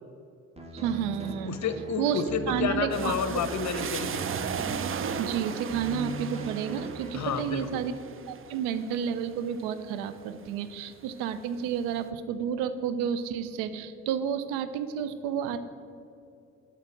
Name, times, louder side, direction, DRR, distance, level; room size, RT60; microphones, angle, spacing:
sound 1, 0.6-7.4, right 1 dB, 15° right, 1.5 m, -39 dB
voice 1, 0.7-1.6 2.0-3.4 5.2-8.0 8.3-15.6, right 8 dB, 85° right, 12 dB, 0.5 m, -31 dB
voice 2, 1.4-4.2 7.1-7.8, left 6 dB, 45° left, 10 dB, 0.7 m, -30 dB
sound 2, 2.9-10.6 11.0-11.8, right 7 dB, 35° right, 0.5 m, -37 dB
6.4 x 5.3 x 6.2 m, 2.6 s
hypercardioid pair, 45°, 39 cm